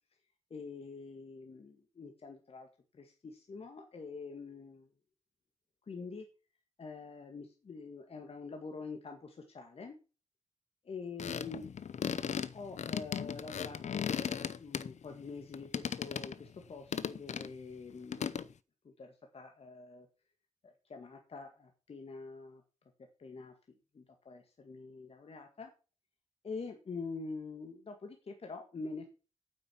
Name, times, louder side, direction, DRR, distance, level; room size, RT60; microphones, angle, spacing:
voice 1, 0.5-2.7 2.9-4.9 5.9-6.3 6.8-9.9 10.8-11.7 12.5-18.4 18.8-20.1 20.6-22.6 23.2-23.5 23.9-25.7 26.4-29.1, left 4 dB, 50° left, 4 dB, 1.8 m, -45 dB
sound 1, 11.2-15.2 15.5-16.4 16.9-17.5 18.1-18.5, left 7 dB, 65° left, 0.6 m, -37 dB
8.9 x 8.6 x 5.8 m, 0.33 s
wide cardioid pair, 155°, 13 cm